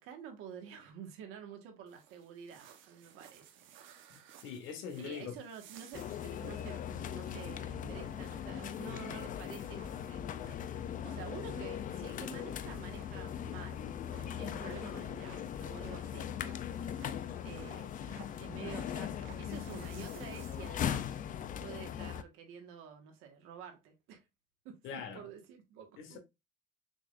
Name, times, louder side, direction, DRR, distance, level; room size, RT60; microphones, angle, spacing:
voice 1, 0.0-3.6 5.0-10.7 11.0-13.9 14.2-16.3 17.4-17.9 18.4-21.0 21.4-24.2 24.6-26.2, right 7 dB, 85° right, 1.5 m, -49 dB
sound 1, 1.9-21.2, right 9 dB, 70° right, 1.0 m, -57 dB
voice 2, 4.4-5.3 18.6-18.7 24.8-25.2 26.0-26.2, left 7 dB, 70° left, 1.5 m, -42 dB
sound 2, 5.9-22.2, left 9 dB, 40° left, 0.5 m, -39 dB
6.1 x 3.5 x 2.5 m
cardioid pair, 130°, 21 cm